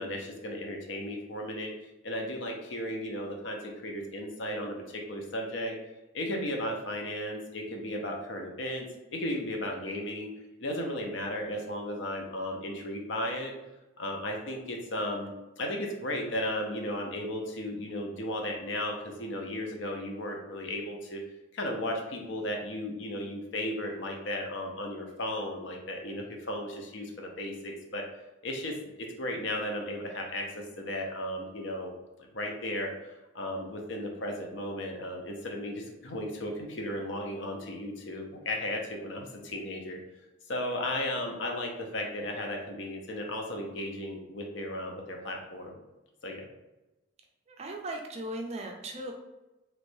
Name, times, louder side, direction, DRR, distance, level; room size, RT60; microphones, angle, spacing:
voice 1, 0.0-1.7 2.0-5.7 6.1-8.9 9.1-10.3 10.6-13.5 14.0-21.2 21.5-28.1 28.4-31.9 32.3-40.0 40.5-45.8 46.2-46.5, left 1 dB, 60° left, 2 dB, 0.6 m, -35 dB
voice 2, 47.5-49.1, right 1 dB, 30° right, 2 dB, 0.4 m, -37 dB
3.1 x 3.1 x 2.6 m, 0.99 s
head